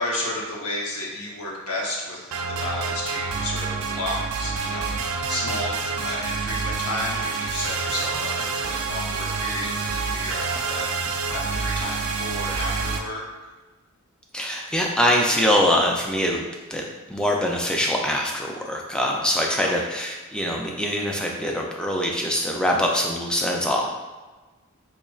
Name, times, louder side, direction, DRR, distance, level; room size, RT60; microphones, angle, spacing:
voice 1, 0.0-10.9 11.3-13.3 19.7-19.9, left 1 dB, 85° left, -3 dB, 0.9 m, -32 dB
sound 1, 2.3-13.0, right 4 dB, 80° right, 0.4 m, -28 dB
voice 2, 14.3-16.8 17.1-23.9, equal, 5° left, -1 dB, 0.3 m, -23 dB
4.1 x 3.0 x 2.4 m, 1.3 s
head